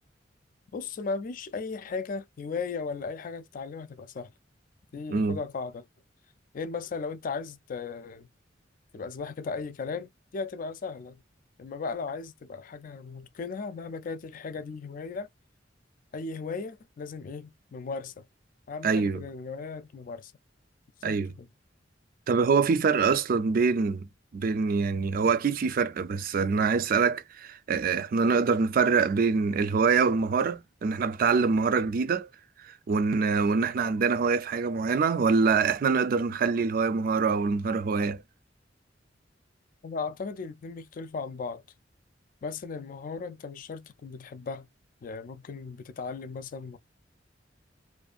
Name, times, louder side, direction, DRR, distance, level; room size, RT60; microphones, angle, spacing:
voice 1, 0.7-4.3 4.9-5.9 6.5-8.3 8.9-11.2 11.6-15.3 16.1-18.2 18.7-20.3 21.0-21.5 22.7-22.8 39.8-41.6 42.4-44.7 45.0-46.8, left 4 dB, 45° left, 0.4 m, -36 dB
voice 2, 18.8-19.2 21.0-21.3 22.3-24.1 24.3-32.3 32.6-38.2, right 5 dB, 50° right, 0.3 m, -25 dB
2.6 x 2.4 x 2.3 m
head